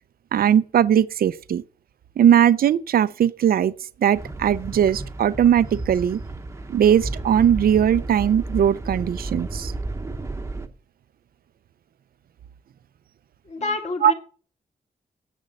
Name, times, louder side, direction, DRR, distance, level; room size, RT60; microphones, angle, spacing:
voice 1, 0.3-1.6 2.2-3.7 4.0-6.2 6.7-9.7 14.0-14.1, right 9 dB, 75° right, 0.5 m, -19 dB
sound 1, 4.1-10.7, right 2 dB, 20° right, 0.8 m, -32 dB
voice 2, 13.4-14.1, left 3 dB, 50° left, 2.2 m, -28 dB
10.5 x 7.1 x 6.3 m
wide cardioid pair, 180°, 15 cm